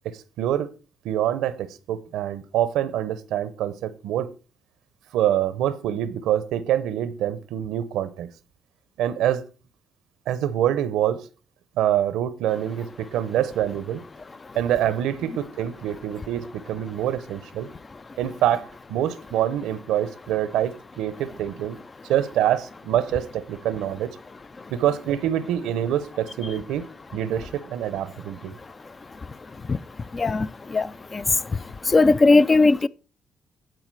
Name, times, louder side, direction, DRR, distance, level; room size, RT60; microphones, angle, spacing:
voice 1, 0.0-0.7 1.0-4.3 5.1-8.3 9.0-9.4 10.3-11.3 11.8-14.0 14.5-17.7 18.2-21.8 22.1-24.2 24.7-28.5, right 11 dB, 90° right, 0.8 m, -25 dB
voice 2, 31.9-32.9, left 3 dB, 30° left, 0.4 m, -16 dB
11.5 x 4.7 x 4.6 m
cardioid pair, 90°, 0 cm